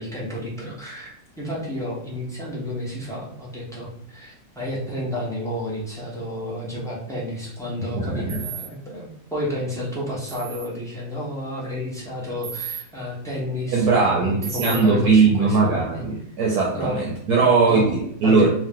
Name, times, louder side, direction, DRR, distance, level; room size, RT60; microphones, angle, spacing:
voice 1, 0.0-16.0 16.7-17.0 17.4-18.5, left 1 dB, 5° left, -6 dB, 0.6 m, -31 dB
voice 2, 7.9-8.4 13.7-18.5, right 4 dB, 65° right, -3 dB, 1.1 m, -19 dB
sound 1, 8.3-8.7 10.3-10.7 12.4-12.8 14.4-14.8, right 9 dB, 85° right, 1.4 m, -33 dB
3.0 x 2.8 x 3.7 m, 0.70 s
omnidirectional pair, 2.0 m